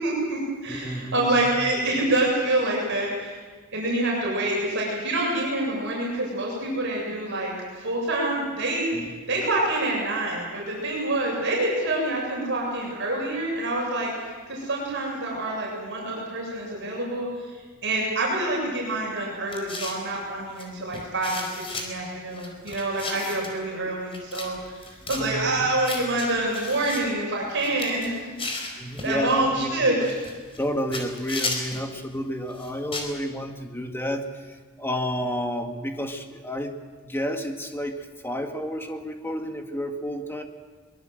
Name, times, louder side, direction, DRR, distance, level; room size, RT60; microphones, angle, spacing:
voice 1, 0.0-3.4 3.7-28.3 28.7-28.8 29.0-30.0, right 2 dB, 60° right, -3 dB, 7.5 m, -27 dB
voice 2, 0.7-1.5 8.9-9.1 25.1-25.7 28.8-29.8 30.6-36.8 37.0-40.4, equal, 10° left, 4 dB, 2.0 m, -31 dB
sound 1, 19.5-20.1 20.6-20.7 20.9-21.9 22.3-23.6 24.1-24.5 24.7-25.2 25.8-27.0 27.5-29.2 30.0-30.7 30.9-31.9 32.5-33.1, left 3 dB, 25° left, 4.5 m, -34 dB
23.5 x 22.5 x 7.9 m, 1.4 s
head